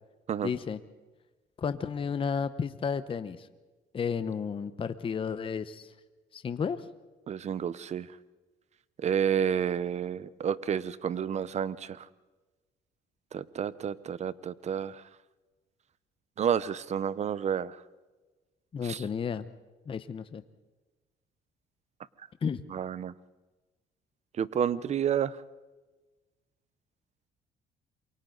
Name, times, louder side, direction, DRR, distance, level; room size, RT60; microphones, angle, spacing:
voice 1, 0.4-0.8 1.6-3.5 3.9-5.9 6.3-6.9 18.7-19.4 19.9-20.4 22.4-22.7, left 6 dB, 30° left, 11 dB, 0.9 m, -32 dB
voice 2, 7.3-8.1 9.0-12.0 13.3-15.0 16.4-17.8 18.9-19.0 22.7-23.1 24.4-25.4, right 8 dB, 40° right, 18 dB, 0.9 m, -30 dB
28.0 x 23.5 x 4.0 m, 1.2 s
cardioid pair, 110°, 17 cm